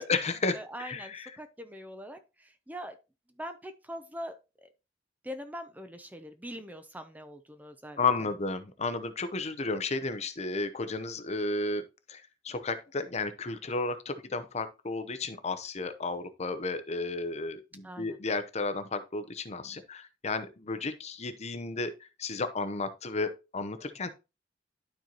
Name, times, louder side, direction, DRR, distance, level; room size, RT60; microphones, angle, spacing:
voice 1, 0.0-1.3 8.0-24.1, left 3 dB, 35° left, 0.7 m, -33 dB
voice 2, 0.5-3.0 3.4-4.3 4.6-4.7 5.2-8.0 17.8-18.2, equal, 10° right, 0.6 m, -42 dB
12.0 x 4.4 x 2.9 m
head